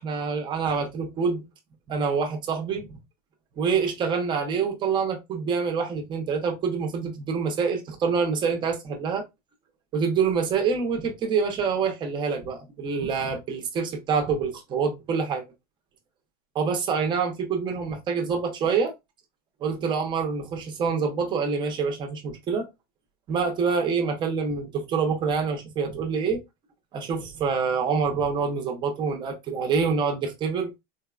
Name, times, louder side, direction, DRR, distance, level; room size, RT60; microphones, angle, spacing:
voice 1, 0.0-1.4 1.9-2.9 3.6-9.2 9.9-15.4 16.5-18.9 19.6-22.7 23.3-26.4 26.9-30.7, right 5 dB, 20° right, 0.6 m, -26 dB
3.9 x 2.1 x 2.3 m
supercardioid pair, 170°, 21 cm